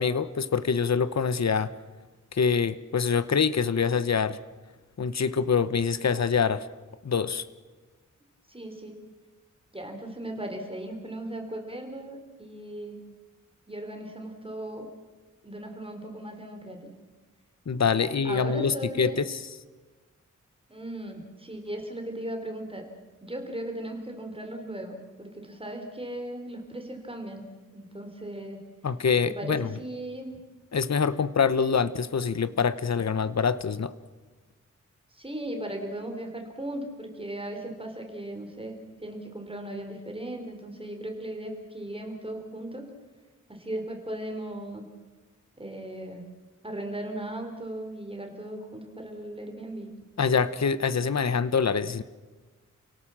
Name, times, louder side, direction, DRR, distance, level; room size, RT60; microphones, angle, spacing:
voice 1, 0.0-1.7 2.3-4.4 5.0-6.7 7.0-7.5 17.7-19.4 28.8-29.7 30.7-33.9 50.2-52.0, left 6 dB, 60° left, 15 dB, 0.9 m, -25 dB
voice 2, 8.5-9.0 9.7-13.1 13.7-14.9 15.4-16.9 17.9-19.2 20.7-22.9 23.2-27.4 27.7-28.6 29.2-30.4 35.1-42.8 43.5-44.8 45.6-46.2 46.6-49.9, right 1 dB, 15° right, 4 dB, 4.3 m, -37 dB
29.5 x 17.5 x 7.4 m, 1.3 s
wide cardioid pair, 80°, 31 cm